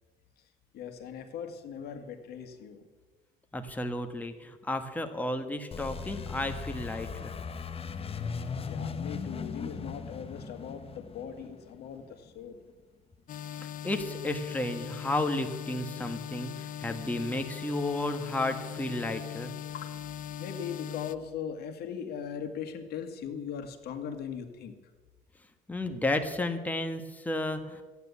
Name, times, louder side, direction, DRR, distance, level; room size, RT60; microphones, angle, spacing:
voice 1, 0.7-2.9 8.6-12.6 19.7-19.8 20.4-24.7, left 7 dB, 70° left, 7 dB, 1.9 m, -39 dB
voice 2, 3.5-7.3 13.5-19.5 25.7-27.8, left 2 dB, 10° left, 6 dB, 1.4 m, -33 dB
sound 1, 5.7-12.3, left 5 dB, 35° left, 1.3 m, -38 dB
sound 2, 13.3-21.2, left 10 dB, 50° left, 0.6 m, -40 dB
14.5 x 9.7 x 8.3 m, 1.3 s
cardioid pair, 110°, 17 cm